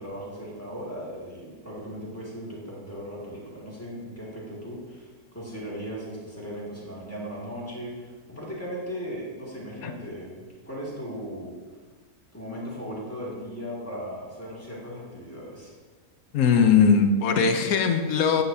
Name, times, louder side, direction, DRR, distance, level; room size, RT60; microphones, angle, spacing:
voice 1, 0.0-11.6 12.3-15.7, equal, 10° left, -6 dB, 2.1 m, -37 dB
voice 2, 16.3-18.4, left 6 dB, 75° left, 6 dB, 1.2 m, -20 dB
9.6 x 8.3 x 2.8 m, 1.4 s
omnidirectional pair, 1.5 m